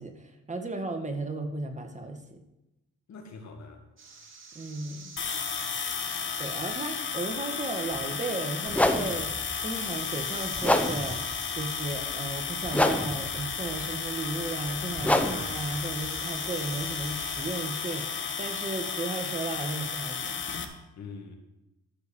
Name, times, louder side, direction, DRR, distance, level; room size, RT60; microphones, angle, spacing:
voice 1, 0.0-2.4 4.5-5.1 6.4-20.4, right 2 dB, 25° right, 5 dB, 1.8 m, -35 dB
voice 2, 3.1-3.8 5.2-5.7 21.0-21.4, left 4 dB, 65° left, 4 dB, 2.2 m, -45 dB
sound 1, 4.0-20.6, right 4 dB, 40° right, 2.6 m, -49 dB
sound 2, 5.2-20.6, left 6 dB, 40° left, 1.4 m, -33 dB
sound 3, 7.9-8.1 8.7-17.5, left 1 dB, 5° left, 0.9 m, -30 dB
13.5 x 4.7 x 7.2 m, 0.94 s
cardioid pair, 90°, 30 cm